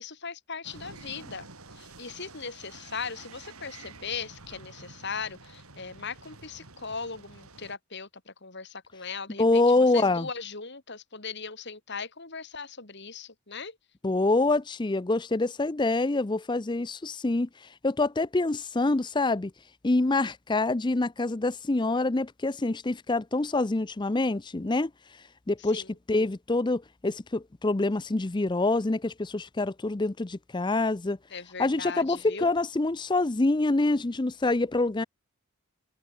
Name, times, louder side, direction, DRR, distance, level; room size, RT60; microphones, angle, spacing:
voice 1, 0.0-1.5 1.7-13.8 25.7-25.9 31.3-32.5, left 5 dB, 50° left, 2.9 m, -39 dB
sound 1, 0.6-7.8, right 3 dB, 80° right, 6.4 m, -49 dB
voice 2, 9.4-10.3 14.0-17.5 17.8-19.5 19.8-24.9 25.5-25.8 26.1-31.2 31.6-35.0, left 2 dB, 20° left, 0.5 m, -26 dB
head